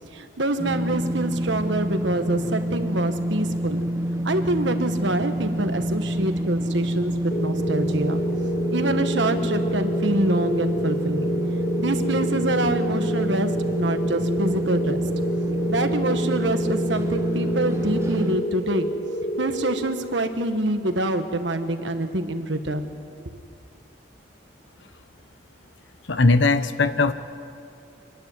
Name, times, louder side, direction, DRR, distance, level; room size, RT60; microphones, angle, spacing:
voice 1, 0.1-3.8 4.2-8.2 8.7-11.3 11.8-15.0 15.7-18.9 19.4-22.9, right 2 dB, 70° right, 8 dB, 1.3 m, -26 dB
sound 1, 0.6-18.4, equal, 15° right, 1.1 m, -27 dB
sound 2, 7.3-20.4, equal, 40° left, 2.5 m, -29 dB
voice 2, 26.1-27.1, left 3 dB, 75° left, 11 dB, 1.0 m, -19 dB
26.0 x 11.5 x 9.5 m, 2.6 s
head